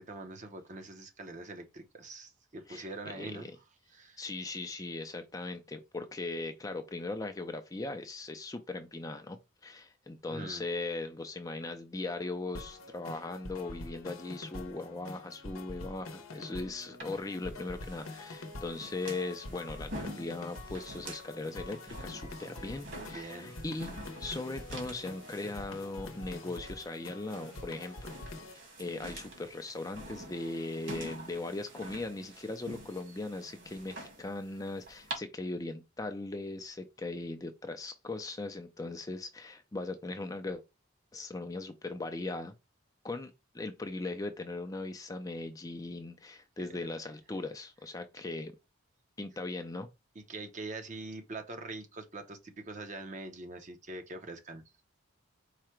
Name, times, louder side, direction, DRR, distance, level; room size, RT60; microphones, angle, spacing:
voice 1, 0.0-3.5 3.9-4.2 10.3-10.6 23.1-23.5 46.6-46.7 50.2-54.6, right 2 dB, 35° right, 0.7 m, -43 dB
voice 2, 2.7-3.5 4.2-9.4 9.6-28.1 28.5-40.6 41.1-42.5 43.0-48.5 49.2-49.9, left 2 dB, 15° left, 0.4 m, -39 dB
sound 1, 12.5-28.5, left 2 dB, 90° left, 0.8 m, -46 dB
sound 2, 17.0-35.1, right 1 dB, 55° right, 1.8 m, -47 dB
4.8 x 2.2 x 4.4 m
head